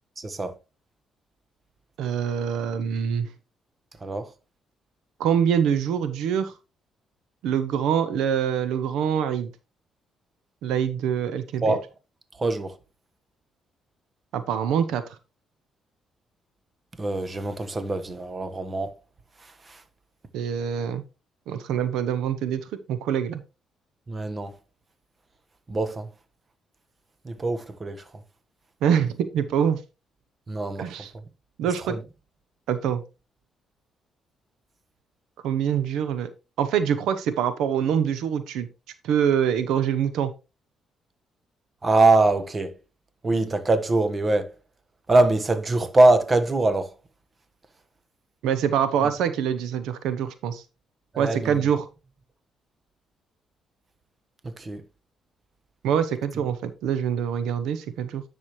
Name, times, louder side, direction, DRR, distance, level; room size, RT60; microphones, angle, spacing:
voice 1, 0.2-0.5 4.0-4.3 11.6-11.9 12.4-12.8 17.0-18.9 19.4-19.8 24.1-24.5 25.7-26.1 27.2-28.0 30.5-30.9 31.9-32.0 41.8-42.7 43.2-44.5 45.1-46.9 51.1-51.6 54.4-54.8, right 2 dB, 30° right, 1.2 m, -23 dB
voice 2, 2.0-3.3 5.2-6.5 7.4-9.5 10.6-11.8 14.3-15.0 20.3-21.0 21.5-23.4 28.8-29.8 30.8-31.1 31.6-32.0 32.7-33.0 35.4-36.3 36.6-38.7 39.0-40.3 48.4-50.6 51.2-51.9 55.8-58.2, right 8 dB, 90° right, 0.8 m, -25 dB
10.0 x 6.2 x 3.1 m
cardioid pair, 90°, 0 cm